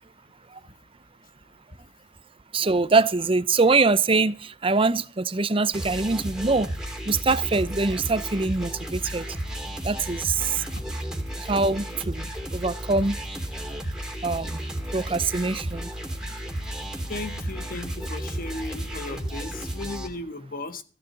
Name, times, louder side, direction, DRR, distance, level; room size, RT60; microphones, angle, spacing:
voice 1, 2.5-6.7 7.1-9.2 9.8-10.6 11.5-12.2 12.5-13.2 14.2-14.6 14.9-15.9, right 3 dB, 30° right, 0.7 m, -23 dB
sound 1, 5.7-20.1, right 1 dB, 5° right, 2.7 m, -33 dB
voice 2, 17.1-20.8, left 2 dB, 55° left, 1.5 m, -36 dB
14.5 x 6.7 x 8.6 m
head